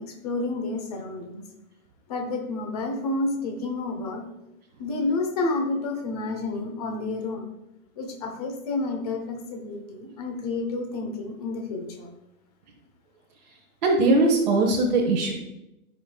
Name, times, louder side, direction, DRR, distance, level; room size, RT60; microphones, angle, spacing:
voice 1, 0.0-1.4 2.1-4.3 4.8-7.5 8.0-12.1, left 3 dB, 25° left, 2 dB, 0.9 m, -30 dB
voice 2, 13.8-15.3, right 2 dB, 35° right, -3 dB, 1.0 m, -20 dB
13.0 x 5.4 x 2.3 m, 0.92 s
hypercardioid pair, 165°, 44 cm